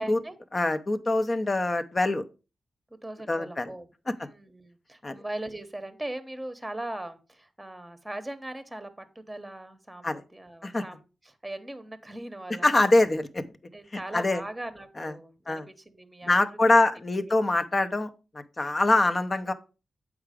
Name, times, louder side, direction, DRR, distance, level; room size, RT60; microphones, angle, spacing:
voice 1, 0.0-0.4 2.9-12.7 13.7-16.8 17.2-17.3 18.7-18.9, right 1 dB, 10° right, 10 dB, 1.1 m, -40 dB
voice 2, 0.5-2.2 3.3-3.7 5.0-5.1 10.0-10.2 10.6-10.8 12.6-13.4 13.9-14.4 15.0-15.1 15.5-15.7 16.2-18.1 18.6-19.5, left 2 dB, 30° left, 9 dB, 0.8 m, -24 dB
8.0 x 4.8 x 5.0 m, 0.32 s
cardioid pair, 100°, 0 cm